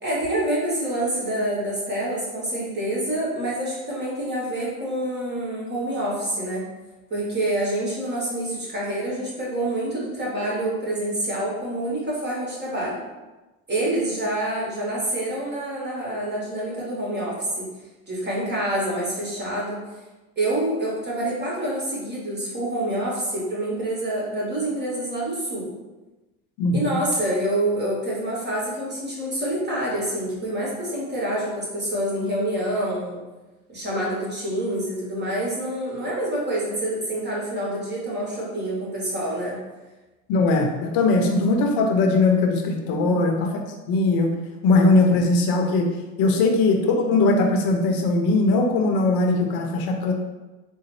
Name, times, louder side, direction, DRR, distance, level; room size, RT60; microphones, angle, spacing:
voice 1, 0.0-6.6 7.1-13.0 13.7-17.7 18.1-19.8 20.4-25.7 26.7-33.2 33.7-39.6 42.9-43.2 46.2-46.5, right 1 dB, 25° right, -5 dB, 1.4 m, -27 dB
voice 2, 40.3-43.6 43.9-44.3 44.6-45.9 46.2-50.1, left 3 dB, 60° left, 3 dB, 0.7 m, -20 dB
3.8 x 2.1 x 3.1 m, 1.1 s
hypercardioid pair, 80°, 40 cm